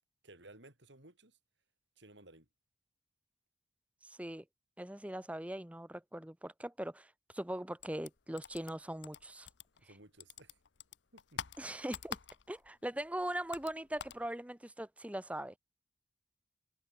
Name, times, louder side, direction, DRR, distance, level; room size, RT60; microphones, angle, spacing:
voice 1, 0.2-1.4 2.0-2.5 9.8-10.6 11.1-11.4, right 2 dB, 70° right, 4.8 m, -57 dB
voice 2, 4.0-4.4 4.8-9.5 11.6-12.2 12.5-15.5, right 1 dB, 5° right, 0.8 m, -41 dB
sound 1, 7.8-9.9 10.2-12.7 13.0-14.3, left 7 dB, 75° left, 0.8 m, -46 dB
head